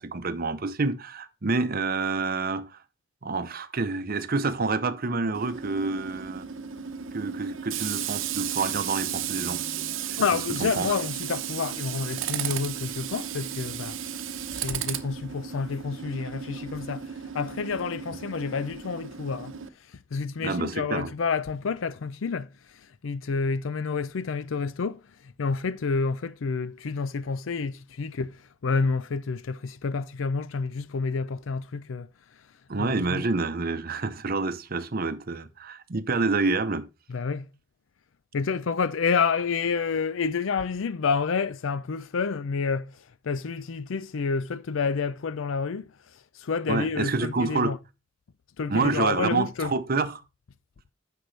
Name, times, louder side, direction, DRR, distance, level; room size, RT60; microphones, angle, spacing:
voice 1, 0.0-2.8 3.2-6.5 7.1-9.6 10.1-10.2 10.8-11.0 20.4-21.1 32.7-36.9 46.7-47.7 48.7-50.2, right 3 dB, 50° right, 0.8 m, -28 dB
Tools, 5.3-19.7, right 9 dB, 80° right, 0.8 m, -34 dB
voice 2, 10.2-14.2 14.5-19.5 19.9-32.1 32.8-33.2 37.1-37.5 38.3-47.8 48.6-49.7, left 5 dB, 75° left, 0.5 m, -29 dB
10.0 x 6.8 x 3.3 m
head